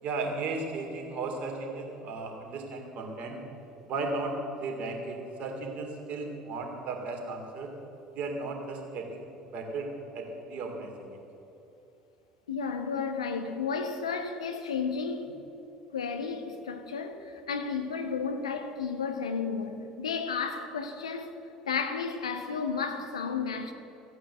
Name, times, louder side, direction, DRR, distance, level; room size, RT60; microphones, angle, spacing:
voice 1, 0.0-3.4 3.9-7.7 8.1-9.9 10.1-11.2, right 3 dB, 45° right, 2.6 m, -35 dB
voice 2, 12.5-15.3 15.9-21.3 21.7-23.7, left 5 dB, 75° left, 1.0 m, -32 dB
14.5 x 8.9 x 7.7 m
figure-of-eight pair, 60°, 3 cm